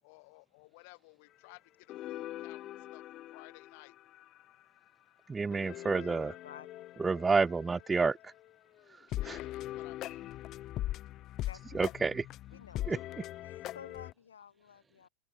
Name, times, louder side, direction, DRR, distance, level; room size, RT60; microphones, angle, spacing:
voice 1, 0.0-4.0 9.2-10.3, left 29 dB, 60° left, 1.2 m, -56 dB
sound 1, 1.9-4.6 5.5-8.5 8.8-8.9 9.1-14.1, left 14 dB, 45° left, 0.9 m, -41 dB
voice 2, 5.3-6.3 7.0-8.3 8.9-9.4 11.7-12.3 12.9-13.0, right 4 dB, 15° right, 0.6 m, -30 dB
voice 3, 5.9-6.9 11.5-11.9 12.5-12.9 13.4-15.1, left 8 dB, 85° left, 0.9 m, -52 dB
hypercardioid pair, 95°, 0 cm